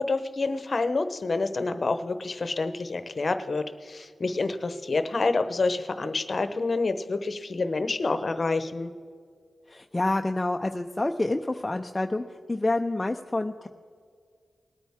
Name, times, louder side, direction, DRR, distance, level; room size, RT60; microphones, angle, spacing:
voice 1, 0.0-8.9, left 3 dB, 55° left, 10 dB, 0.9 m, -28 dB
voice 2, 9.7-12.2 12.5-13.7, left 2 dB, 25° left, 4 dB, 0.6 m, -27 dB
20.0 x 9.0 x 3.6 m, 2.1 s
cardioid pair, 45°, 0 cm